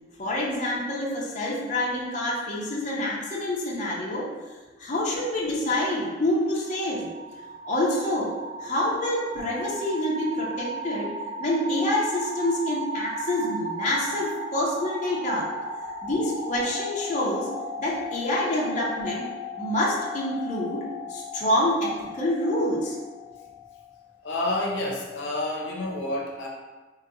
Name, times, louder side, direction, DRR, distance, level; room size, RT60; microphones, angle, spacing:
voice 1, 0.2-4.3 4.8-7.1 7.7-8.3 8.6-11.1 11.4-15.5 16.0-17.5 17.8-19.3 19.6-20.8 21.1-23.0, left 1 dB, 40° left, -5 dB, 0.6 m, -27 dB
sound 1, 6.3-24.1, equal, 10° right, 0.6 m, -36 dB
voice 2, 24.2-26.5, left 1 dB, 85° left, -2 dB, 0.6 m, -29 dB
3.4 x 2.9 x 2.5 m, 1.3 s
head